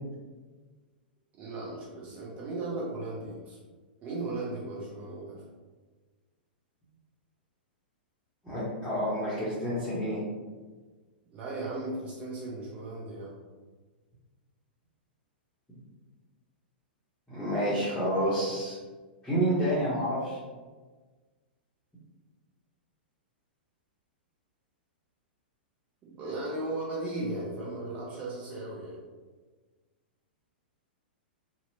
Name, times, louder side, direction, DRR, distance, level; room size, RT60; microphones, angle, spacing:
voice 1, 1.3-3.6 4.0-5.4 11.3-13.3 26.0-29.0, right 2 dB, 30° right, -5 dB, 0.7 m, -36 dB
voice 2, 8.4-10.2 17.3-18.8 19.2-20.4, equal, 10° left, -11 dB, 0.9 m, -29 dB
2.8 x 2.1 x 2.6 m, 1.4 s
figure-of-eight pair, 105°, 6 cm